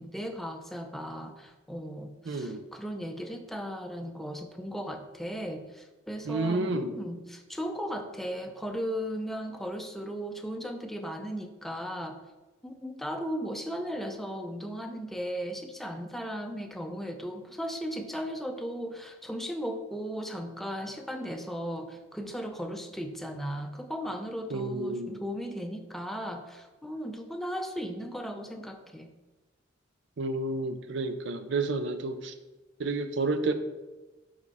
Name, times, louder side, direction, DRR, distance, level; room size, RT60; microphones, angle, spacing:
voice 1, 0.0-12.2 12.6-29.1, equal, ahead, 5 dB, 0.5 m, -36 dB
voice 2, 2.3-2.6 6.3-6.9 24.5-25.2 30.2-32.3 32.8-33.5, right 3 dB, 65° right, 9 dB, 0.5 m, -30 dB
5.4 x 5.1 x 4.1 m, 1.1 s
head